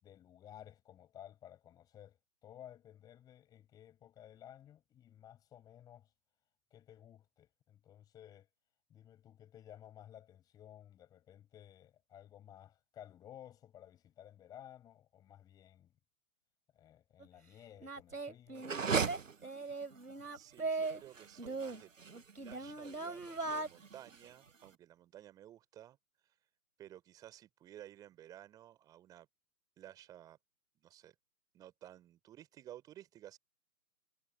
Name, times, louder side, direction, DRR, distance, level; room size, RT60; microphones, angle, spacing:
voice 1, 0.0-6.1 6.7-8.5 8.9-15.9 16.7-18.7, left 11 dB, 10° left, 6.7 m, -56 dB
Singing, 17.2-17.3 17.8-21.0 21.4-23.7, right 3 dB, 70° right, 3.4 m, -40 dB
sound 1, 18.6-24.7, right 5 dB, 55° right, 0.9 m, -40 dB
voice 2, 20.3-21.9 22.4-26.0 26.8-29.3 29.8-30.4 30.8-31.1 31.5-33.4, right 12 dB, 10° right, 4.2 m, -55 dB
figure-of-eight pair, 150°, 47 cm